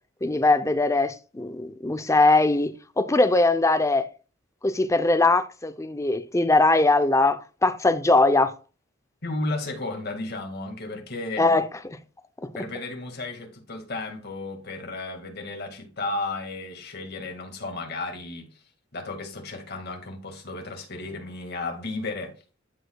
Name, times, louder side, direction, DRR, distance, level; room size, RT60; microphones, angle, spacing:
voice 1, 0.2-4.0 4.6-8.5 11.4-12.0 12.4-12.5, left 2 dB, 15° left, 0.6 m, -21 dB
voice 2, 9.2-11.5 12.6-18.5 18.9-22.3, left 2 dB, 55° left, 2.0 m, -33 dB
12.5 x 4.9 x 2.3 m
head